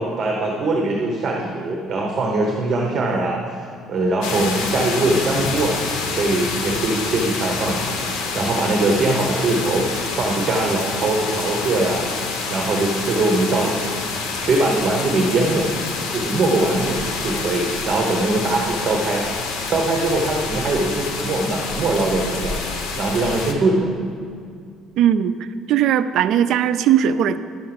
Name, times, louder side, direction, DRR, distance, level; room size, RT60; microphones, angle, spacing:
voice 1, 0.0-5.8 6.1-7.9 8.3-12.1 12.5-15.7 16.1-19.2 19.6-22.6 23.0-23.9, right 2 dB, 35° right, 0 dB, 1.0 m, -22 dB
sound 1, 4.2-23.5, left 4 dB, 85° left, 1.1 m, -27 dB
voice 2, 25.0-27.4, right 9 dB, 60° right, 12 dB, 0.4 m, -18 dB
11.0 x 6.4 x 5.9 m, 2.3 s
cardioid pair, 160°, 0 cm